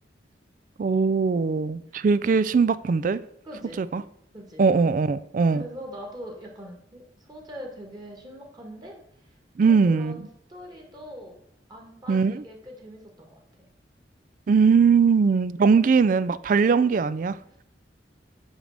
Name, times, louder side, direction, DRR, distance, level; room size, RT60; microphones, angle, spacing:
voice 1, 0.8-3.2 3.8-4.0 4.6-5.6 9.6-10.3 12.1-12.4 14.5-17.4, right 5 dB, 45° right, 0.3 m, -20 dB
voice 2, 3.4-3.8 4.3-4.6 5.5-9.0 9.6-11.4 11.7-13.4, equal, 25° right, 1.6 m, -42 dB
8.8 x 3.4 x 6.4 m
head